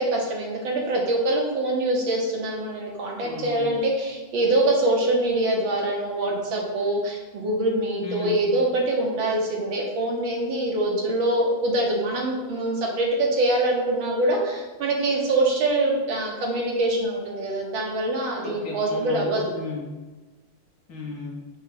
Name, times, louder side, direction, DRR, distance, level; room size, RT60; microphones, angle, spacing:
voice 1, 0.0-19.4, right 1 dB, 85° right, -1 dB, 2.0 m, -24 dB
voice 2, 3.2-3.7 8.0-8.5 18.4-20.0 20.9-21.4, left 3 dB, 60° left, -1 dB, 1.4 m, -35 dB
5.7 x 3.2 x 5.5 m, 1.2 s
omnidirectional pair, 2.1 m